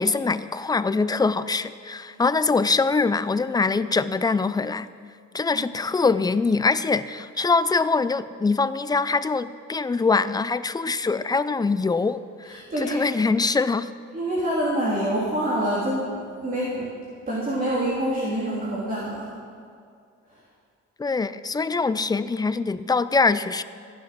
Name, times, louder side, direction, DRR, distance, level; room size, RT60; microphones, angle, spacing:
voice 1, 0.0-4.9 5.3-13.9 21.0-23.6, left 4 dB, 15° left, 14 dB, 0.4 m, -23 dB
voice 2, 12.4-13.0 14.1-16.9 17.3-19.3 20.3-20.4, right 1 dB, 30° right, -7 dB, 3.3 m, -26 dB
15.0 x 11.0 x 6.1 m, 2.2 s
cardioid pair, 115°, 29 cm